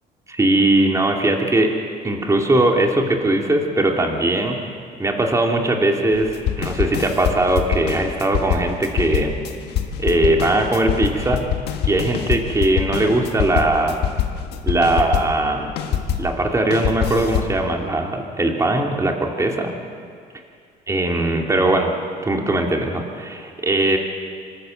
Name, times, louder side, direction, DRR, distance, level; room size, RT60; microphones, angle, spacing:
voice 1, 0.3-1.7 2.0-9.3 10.0-11.4 11.8-14.0 14.6-15.7 16.2-19.7 20.9-21.9 22.2-24.0, right 2 dB, 20° right, 1 dB, 2.5 m, -20 dB
sound 1, 6.1-16.3 16.7-17.6, left 9 dB, 75° left, 1.6 m, -24 dB
26.0 x 13.0 x 7.9 m, 2.2 s
cardioid pair, 110°, 17 cm